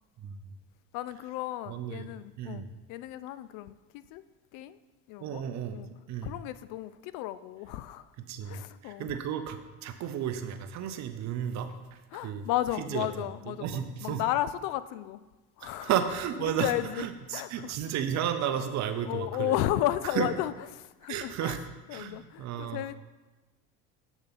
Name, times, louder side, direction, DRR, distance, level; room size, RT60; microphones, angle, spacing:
voice 1, 0.9-4.2 4.5-4.8 5.1-5.4 5.7-5.9 6.2-8.1 8.4-9.2 12.1-15.2 15.6-15.9 16.4-17.8 18.4-18.7 19.0-21.6 21.9-22.9, left 14 dB, 65° left, 0.5 m, -34 dB
voice 2, 1.7-2.1 2.4-2.7 5.2-5.8 6.1-6.3 8.3-12.4 12.8-13.1 13.5-14.2 15.6-16.7 17.0-19.5 20.1-20.3 21.1-21.6 21.9-22.8, right 9 dB, 50° right, 0.8 m, -33 dB
7.1 x 6.9 x 4.1 m
supercardioid pair, 105°, 35 cm